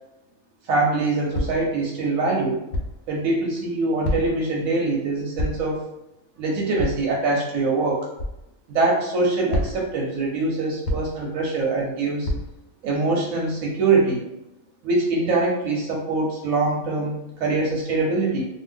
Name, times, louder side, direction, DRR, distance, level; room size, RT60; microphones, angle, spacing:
voice 1, 0.6-2.6 3.1-5.8 6.4-8.1 8.7-12.3 12.8-14.2 14.8-18.5, right 3 dB, 90° right, -3 dB, 1.1 m, -23 dB
sound 1, 1.3-1.7 2.7-3.0 4.0-4.5 5.4-5.7 6.8-7.1 8.2-8.4 9.5-10.0 10.8-11.3 12.2-12.7, left 1 dB, 80° left, 1.0 m, -27 dB
2.7 x 2.5 x 3.3 m, 0.90 s
omnidirectional pair, 1.4 m